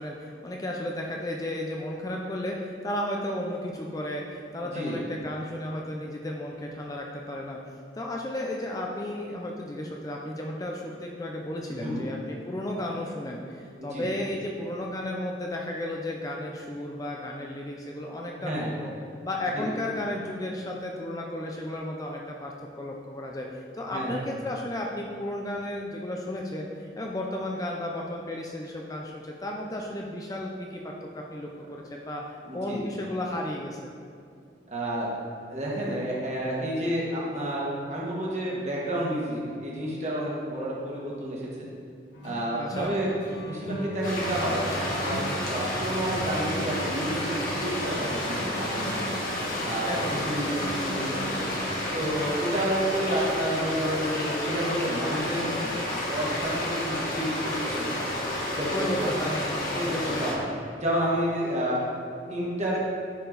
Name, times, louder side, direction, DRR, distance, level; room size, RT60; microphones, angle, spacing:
voice 1, 0.0-7.6 7.9-18.9 19.2-33.9 42.5-42.9 49.8-50.3 55.4-55.7 58.7-60.2, left 1 dB, 20° left, -1 dB, 0.5 m, -34 dB
voice 2, 4.6-5.0 11.7-12.1 13.8-14.1 18.4-18.7 19.5-19.7 23.9-24.2 32.5-32.8 34.7-35.1 35.5-41.7 42.2-43.1 43.4-44.6 45.0-49.0 49.6-51.4 51.9-55.5 56.1-58.0 58.5-59.1 59.7-60.4 60.8-61.8 62.3-62.8, right 1 dB, 40° right, -5 dB, 1.7 m, -30 dB
sound 1, 42.1-52.2, right 1 dB, 85° left, 1.7 m, -38 dB
sound 2, 44.0-60.3, left 1 dB, 50° left, 1.6 m, -31 dB
10.5 x 4.5 x 4.0 m, 2.4 s
head